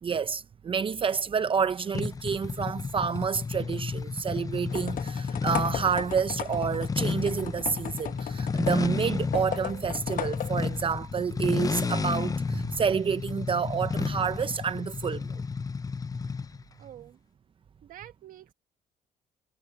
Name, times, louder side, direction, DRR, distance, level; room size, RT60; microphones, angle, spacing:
voice 1, 0.0-15.3, right 6 dB, 35° right, 0.7 m, -29 dB
sound 1, 1.9-16.6, left 5 dB, 25° left, 0.7 m, -32 dB
sound 2, 4.7-10.9, left 11 dB, 65° left, 1.2 m, -37 dB
voice 2, 16.8-17.2 17.8-18.5, right 11 dB, 65° right, 1.6 m, -47 dB
cardioid pair, 95°, 15 cm